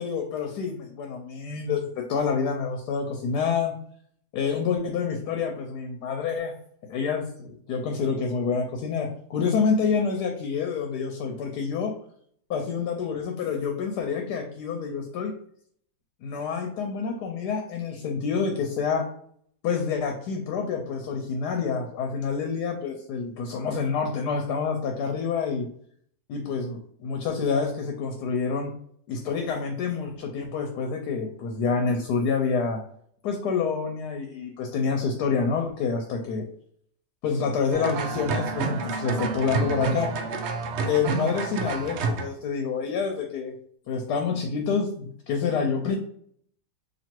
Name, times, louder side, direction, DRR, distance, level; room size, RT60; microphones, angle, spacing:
voice 1, 0.0-3.7 4.3-6.5 6.9-11.9 12.5-15.3 16.2-19.1 19.6-25.7 26.3-28.7 29.1-32.8 33.2-36.4 37.2-40.1 40.8-43.5 43.9-46.0, left 5 dB, 75° left, 3 dB, 1.2 m, -27 dB
sound 1, 37.7-42.3, right 4 dB, 90° right, 0.5 m, -29 dB
3.0 x 2.8 x 4.4 m, 0.63 s
omnidirectional pair, 1.8 m